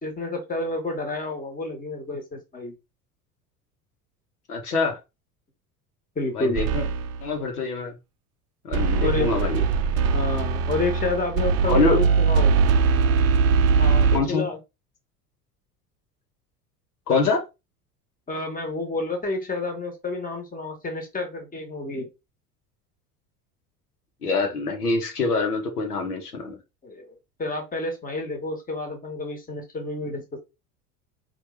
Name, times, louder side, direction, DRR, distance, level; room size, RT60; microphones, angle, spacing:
voice 1, 0.0-2.7 6.1-6.6 9.0-9.3 10.1-12.6 13.8-14.6 18.3-22.1 26.8-30.2, left 2 dB, 20° left, 1.5 m, -30 dB
voice 2, 4.5-5.0 6.3-6.8 7.2-7.9 8.6-9.6 11.7-12.0 14.1-14.5 17.1-17.4 24.2-26.6, left 3 dB, 80° left, 1.1 m, -24 dB
sound 1, 6.5-7.3 8.7-14.2, right 5 dB, 35° right, 0.6 m, -21 dB
4.3 x 2.6 x 3.2 m
figure-of-eight pair, 70°, 45 cm